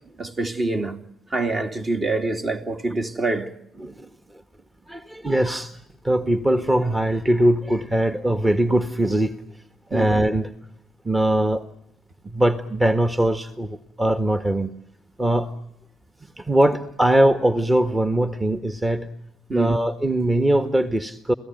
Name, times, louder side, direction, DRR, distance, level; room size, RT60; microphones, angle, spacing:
voice 1, 0.2-1.0 1.3-3.5 9.9-10.1 19.5-19.8, right 2 dB, 45° right, 2.8 m, -25 dB
voice 2, 4.9-5.8 6.0-9.4 9.9-10.5 11.0-11.6 12.2-14.7 15.2-15.5 16.4-19.1 19.5-21.3, right 1 dB, 25° right, 1.6 m, -21 dB
29.5 x 17.5 x 9.2 m
hypercardioid pair, 50°, 0 cm